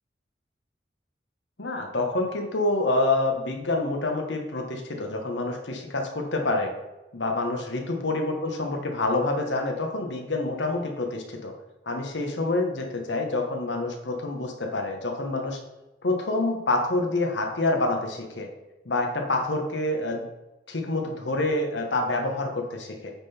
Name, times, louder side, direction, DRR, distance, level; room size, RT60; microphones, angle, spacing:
voice 1, 1.6-6.7 7.1-11.5 11.9-15.6 16.0-18.5 18.8-20.3 20.7-23.1, left 2 dB, 80° left, 3 dB, 1.3 m, -27 dB
8.7 x 3.9 x 4.4 m, 1.0 s
head